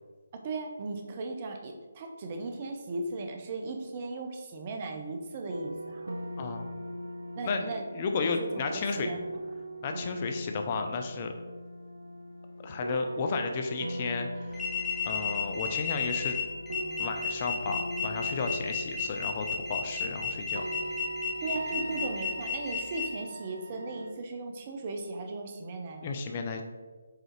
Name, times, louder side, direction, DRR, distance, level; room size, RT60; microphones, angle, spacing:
voice 1, 0.3-6.2 7.3-7.8 8.2-9.4 21.4-26.2, right 3 dB, 30° right, 4 dB, 0.6 m, -37 dB
sound 1, 5.5-24.1, equal, 75° right, 0.6 m, -40 dB
voice 2, 6.4-6.7 7.5-7.6 7.9-9.1 9.8-11.3 12.6-14.6 15.0-16.4 17.0-20.6 26.0-26.6, left 4 dB, 30° left, 5 dB, 0.4 m, -33 dB
sound 2, 14.5-23.0, left 6 dB, 5° left, 0.7 m, -33 dB
4.8 x 3.7 x 3.0 m, 1.4 s
figure-of-eight pair, 150°, 0 cm